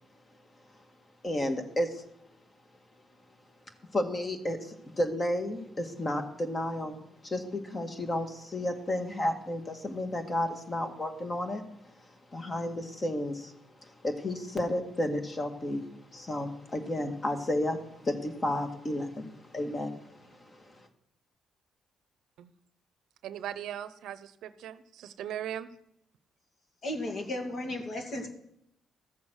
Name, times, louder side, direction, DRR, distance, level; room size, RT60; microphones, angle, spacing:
voice 1, 1.2-2.0 3.9-11.6 12.3-13.5 13.8-15.8 16.1-20.7, left 1 dB, 30° left, 5 dB, 1.9 m, -32 dB
voice 2, 23.2-25.7, right 10 dB, 80° right, 13 dB, 0.7 m, -39 dB
voice 3, 26.8-28.3, left 1 dB, 50° left, 4 dB, 2.4 m, -34 dB
14.0 x 7.3 x 6.3 m, 0.77 s
cardioid pair, 90°, 0 cm